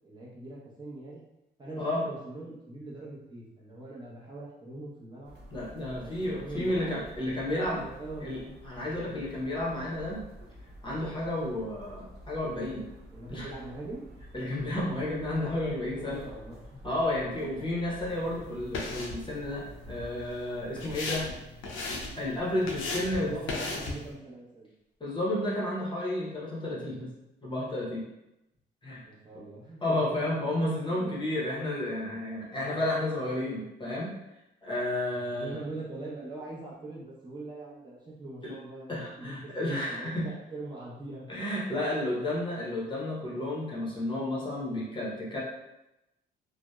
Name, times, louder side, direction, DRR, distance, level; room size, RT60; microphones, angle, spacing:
voice 1, 0.0-1.2 1.6-5.4 6.0-8.5 8.9-9.1 13.1-14.1 15.9-16.9 17.4-17.6 20.8-21.0 22.8-24.7 29.0-30.0 30.9-31.1 32.5-32.8 35.3-41.3, right 2 dB, 20° right, -7 dB, 0.8 m, -42 dB
sound 1, 5.2-20.1, equal, 55° right, 0.6 m, -49 dB
voice 2, 5.5-7.8 8.2-10.2 10.8-12.9 13.3-13.5 14.3-16.2 16.8-21.3 21.9-23.4 25.0-27.1 27.4-28.0 28.8-29.0 29.8-34.1 34.6-35.6 38.4-38.5 38.9-40.3 41.3-45.4, left 1 dB, 25° left, -6 dB, 0.7 m, -32 dB
sound 2, 18.1-24.1, left 3 dB, 80° left, 0.5 m, -38 dB
2.7 x 2.0 x 2.2 m, 0.93 s
cardioid pair, 90°, 20 cm